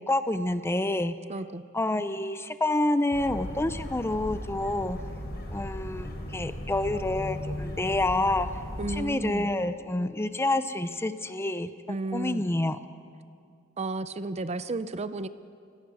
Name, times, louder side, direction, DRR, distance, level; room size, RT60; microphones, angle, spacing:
voice 1, 0.1-1.1 1.7-5.0 5.5-8.5 8.9-11.7 12.1-12.8, left 2 dB, 10° left, 11 dB, 0.6 m, -28 dB
voice 2, 1.3-1.6 8.8-9.5 11.9-12.4 13.8-15.3, right 2 dB, 30° right, 13 dB, 0.6 m, -32 dB
sound 1, 3.1-9.0, left 1 dB, 50° left, 4.3 m, -37 dB
30.0 x 17.0 x 6.2 m, 2.4 s
head